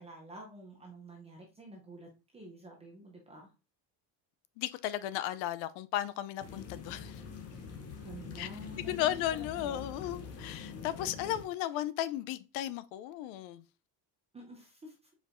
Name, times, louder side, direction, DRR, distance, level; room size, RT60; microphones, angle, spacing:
voice 1, 0.0-3.5 8.0-10.2 14.3-15.0, right 2 dB, 15° right, 0.5 m, -50 dB
voice 2, 4.6-7.2 8.4-8.5 8.9-13.6, left 13 dB, 75° left, 0.5 m, -35 dB
sound 1, 6.4-11.4, left 6 dB, 30° left, 0.7 m, -45 dB
4.7 x 4.5 x 2.5 m
cardioid pair, 170°, 48 cm